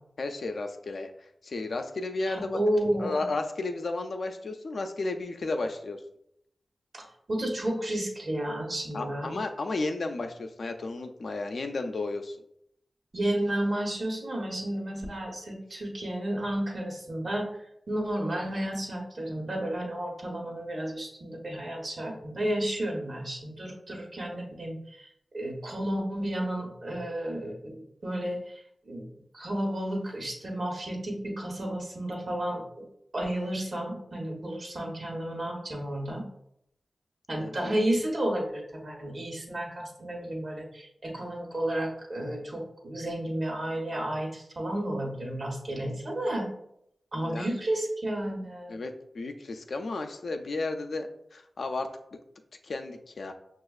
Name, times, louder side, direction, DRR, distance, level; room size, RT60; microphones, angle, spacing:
voice 1, 0.2-1.1 1.4-2.6 3.0-6.0 8.9-12.4 37.4-37.8 47.2-47.5 48.7-51.9 52.6-53.3, left 3 dB, 75° left, 5 dB, 0.4 m, -33 dB
voice 2, 2.2-3.2 6.9-9.4 13.1-17.5 17.9-24.8 25.3-29.1 29.3-32.6 33.1-36.2 37.3-46.5 47.1-48.8, right 1 dB, 65° right, -1 dB, 1.1 m, -32 dB
6.1 x 2.4 x 2.4 m, 0.76 s
cardioid pair, 40°, 0 cm